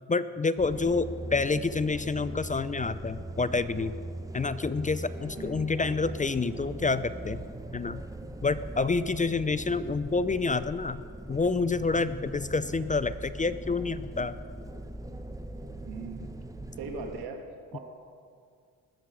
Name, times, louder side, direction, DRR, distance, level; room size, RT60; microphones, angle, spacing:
voice 1, 0.1-3.9 4.3-7.4 7.7-8.0 8.4-11.0 11.3-14.3 17.7-17.8, left 4 dB, 20° left, 14 dB, 0.4 m, -28 dB
sound 1, 0.6-17.3, right 1 dB, 10° right, 0.8 m, -40 dB
voice 2, 5.4-5.7 15.8-16.3 16.7-17.8, right 4 dB, 80° right, 4 dB, 1.5 m, -39 dB
19.5 x 7.5 x 4.8 m, 2.2 s
supercardioid pair, 60°, 38 cm